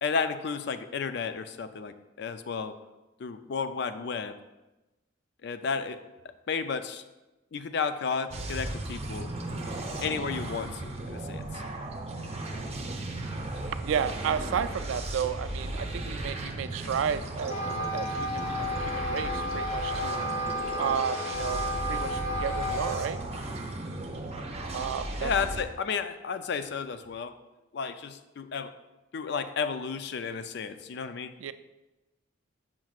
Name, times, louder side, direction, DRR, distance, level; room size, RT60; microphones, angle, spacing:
voice 1, 0.0-2.8 3.2-4.3 5.4-6.0 6.5-7.0 7.5-9.3 10.0-11.4 25.2-27.3 27.7-28.7 29.1-31.3, left 5 dB, 60° left, 10 dB, 0.4 m, -32 dB
sound 1, 8.3-25.6, right 2 dB, 30° right, 0.7 m, -36 dB
voice 2, 13.8-17.6 17.9-20.2 20.8-23.2 24.7-25.3 31.4-31.5, right 7 dB, 80° right, 12 dB, 0.3 m, -32 dB
Wind instrument woodwind instrument, 17.4-23.0, equal, 35° left, 0.9 m, -32 dB
7.5 x 5.9 x 2.4 m, 1.0 s
head